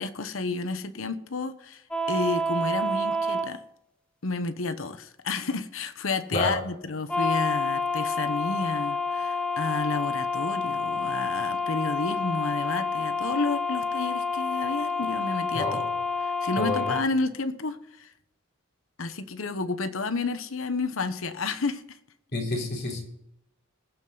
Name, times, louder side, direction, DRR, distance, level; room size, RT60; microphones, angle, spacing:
voice 1, 0.0-1.8 2.1-3.6 4.2-15.8 16.2-18.1 19.0-22.0, left 3 dB, 75° left, 1.0 m, -31 dB
sound 1, 1.9-3.5 7.1-17.0, left 3 dB, 5° left, 0.8 m, -28 dB
voice 2, 16.6-16.9 22.3-23.0, left 2 dB, 50° left, 3.8 m, -28 dB
20.0 x 7.7 x 3.9 m
head